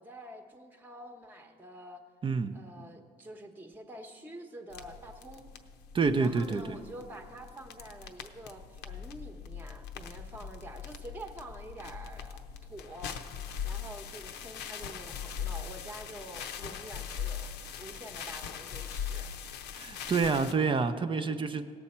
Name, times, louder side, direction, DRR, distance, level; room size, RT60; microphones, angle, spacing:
voice 1, 0.0-2.0 2.5-5.4 6.2-19.3, right 1 dB, 10° right, 4 dB, 0.9 m, -47 dB
voice 2, 2.2-2.6 5.9-6.8 19.8-21.7, right 4 dB, 30° right, 9 dB, 0.5 m, -28 dB
sound 1, 4.7-20.5, left 8 dB, 85° left, 0.7 m, -41 dB
17.5 x 7.0 x 4.3 m, 2.2 s
cardioid pair, 110°, 17 cm